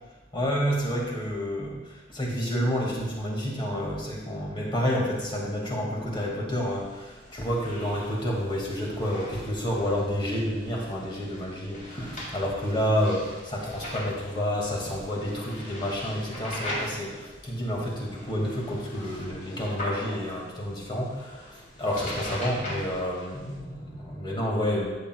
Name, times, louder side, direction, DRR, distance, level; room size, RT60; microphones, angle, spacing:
voice 1, 0.3-24.9, equal, 25° left, -2 dB, 2.0 m, -29 dB
sound 1, 6.6-23.6, left 1 dB, 45° left, 2.9 m, -41 dB
13.5 x 7.9 x 2.3 m, 1.2 s
head